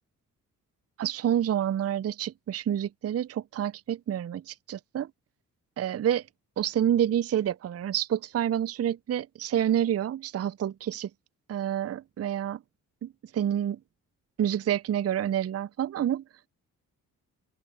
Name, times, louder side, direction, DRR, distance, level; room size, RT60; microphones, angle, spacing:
voice 1, 1.0-5.1 5.8-6.2 6.6-11.1 11.5-12.6 13.0-13.8 14.4-16.2, right 10 dB, 35° right, 0.6 m, -28 dB
open air
hypercardioid pair, 45°, 40 cm